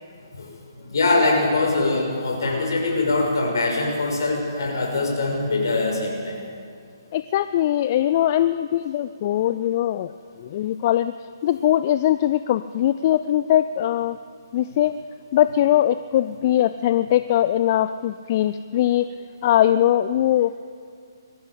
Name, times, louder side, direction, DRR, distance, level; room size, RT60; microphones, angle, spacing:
voice 1, 0.7-6.4 8.2-8.3, left 2 dB, 60° left, 0 dB, 6.3 m, -23 dB
voice 2, 7.1-10.1 10.4-11.1 11.4-14.2 14.5-14.9 15.3-19.1 19.4-20.6, left 12 dB, 35° left, 13 dB, 0.5 m, -21 dB
21.0 x 15.0 x 8.3 m, 2.2 s
figure-of-eight pair, 135°, 2 cm